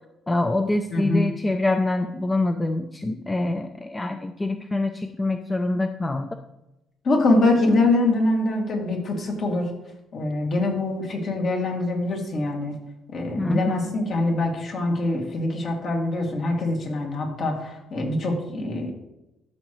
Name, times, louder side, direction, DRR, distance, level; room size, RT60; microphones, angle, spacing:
voice 1, 0.3-6.3 13.4-13.8, left 2 dB, 15° left, 6 dB, 0.5 m, -25 dB
voice 2, 0.9-1.3 7.0-9.7 10.1-12.7 13.1-18.9, left 2 dB, 50° left, 0 dB, 2.4 m, -24 dB
13.0 x 6.5 x 3.1 m, 0.92 s
cardioid pair, 125°, 0 cm